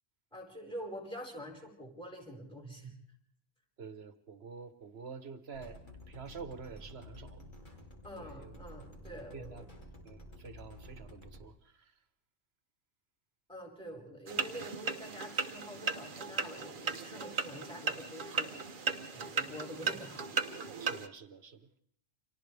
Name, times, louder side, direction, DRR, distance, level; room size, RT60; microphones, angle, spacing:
voice 1, 0.3-3.0 8.0-9.7 13.5-20.3, equal, 5° left, 0 dB, 4.9 m, -46 dB
voice 2, 3.8-5.8 6.1-7.5 8.2-8.9 9.3-9.7 10.0-11.9 20.8-21.7, right 5 dB, 70° right, 10 dB, 1.4 m, -48 dB
sound 1, 5.5-11.4, left 1 dB, 50° left, 3.0 m, -51 dB
sound 2, 14.3-21.1, right 5 dB, 55° right, 1.2 m, -36 dB
29.5 x 26.0 x 3.4 m, 0.65 s
omnidirectional pair, 1.1 m